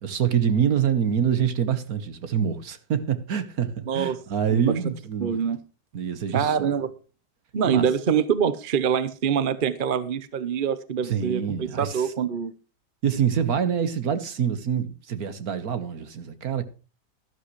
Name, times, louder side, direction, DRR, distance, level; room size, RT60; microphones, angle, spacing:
voice 1, 0.0-5.3 5.9-6.8 7.6-7.9 11.0-12.1 13.0-16.6, right 8 dB, 60° right, 1.6 m, -26 dB
voice 2, 3.9-4.2 4.5-4.8 5.2-5.6 6.3-6.9 7.5-12.5, right 7 dB, 40° right, 0.8 m, -25 dB
12.5 x 12.5 x 3.2 m
omnidirectional pair, 1.8 m